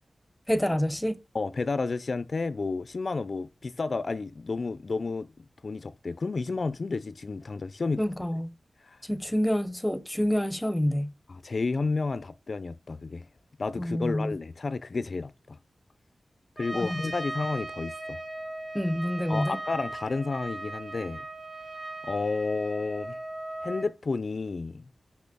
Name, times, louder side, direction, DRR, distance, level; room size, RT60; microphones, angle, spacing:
voice 1, 0.5-1.2 8.0-8.5 9.0-11.1 13.8-14.4 16.7-17.1 18.7-19.6, equal, 5° left, 0.7 m, -27 dB
voice 2, 1.3-8.0 8.8-9.0 11.3-13.3 13.6-15.6 16.6-18.2 19.3-21.3 22.0-23.2 23.6-24.9, left 3 dB, 55° left, 0.4 m, -31 dB
Trumpet, 16.6-23.9, right 1 dB, 25° right, 2.7 m, -38 dB
6.1 x 5.8 x 3.5 m
wide cardioid pair, 100°, 0 cm